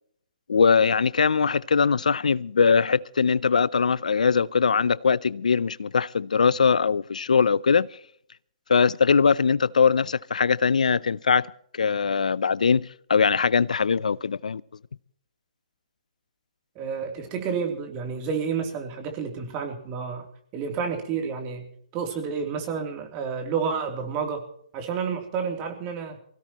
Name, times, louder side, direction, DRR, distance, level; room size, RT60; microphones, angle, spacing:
voice 1, 0.5-8.0 8.7-14.6, left 5 dB, 80° left, 0.5 m, -21 dB
voice 2, 16.7-20.2 20.5-21.7 21.9-24.5 24.7-26.2, right 6 dB, 30° right, 3.1 m, -30 dB
24.5 x 16.5 x 3.0 m
hypercardioid pair, 140°, 4 cm